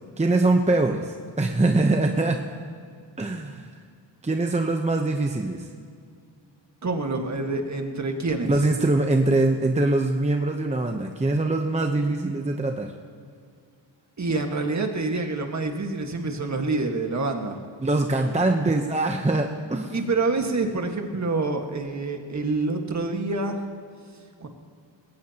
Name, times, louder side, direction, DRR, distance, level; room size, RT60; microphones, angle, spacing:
voice 1, 0.2-2.4 3.2-3.8 4.2-5.7 8.5-12.9 17.8-19.9, right 2 dB, 15° right, 4 dB, 0.8 m, -23 dB
voice 2, 6.8-8.5 14.2-17.6 19.9-23.6 24.4-24.5, right 3 dB, 40° right, 4 dB, 1.7 m, -27 dB
20.0 x 17.5 x 2.9 m, 2.2 s
cardioid pair, 100°, 45 cm